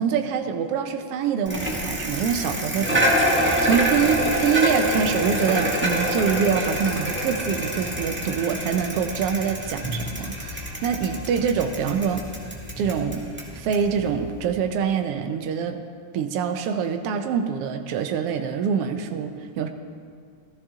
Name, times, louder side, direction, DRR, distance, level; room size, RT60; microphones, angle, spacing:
voice 1, 0.0-12.3 12.8-13.2 13.5-15.8 16.1-19.7, right 7 dB, 75° right, 6 dB, 1.4 m, -25 dB
Bicycle, 1.5-14.6, equal, 5° right, 0.8 m, -26 dB
16.0 x 13.5 x 3.7 m, 2.1 s
omnidirectional pair, 3.4 m